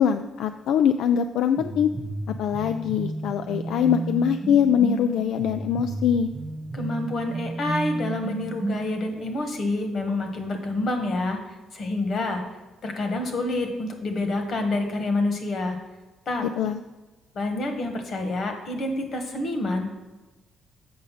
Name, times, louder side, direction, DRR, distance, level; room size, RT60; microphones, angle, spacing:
voice 1, 0.0-1.9 2.4-6.3 16.4-16.8, left 8 dB, 80° left, 8 dB, 0.3 m, -23 dB
sound 1, 1.6-9.2, right 2 dB, 35° right, 0.7 m, -32 dB
voice 2, 6.7-11.4 11.7-12.4 12.8-15.8 16.3-16.4 17.3-19.9, left 2 dB, 55° left, 5 dB, 1.5 m, -27 dB
7.8 x 5.4 x 5.7 m, 1.1 s
cardioid pair, 90°, 0 cm